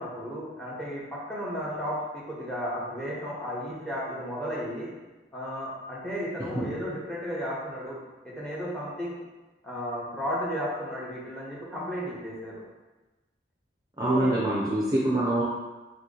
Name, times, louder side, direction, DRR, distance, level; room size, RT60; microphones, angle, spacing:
voice 1, 0.0-4.9 5.3-8.0 8.2-9.2 9.6-12.6 14.0-14.4, equal, 5° left, -6 dB, 0.9 m, -34 dB
voice 2, 14.0-15.4, right 1 dB, 20° right, -6 dB, 0.5 m, -25 dB
3.6 x 2.9 x 3.8 m, 1.1 s
head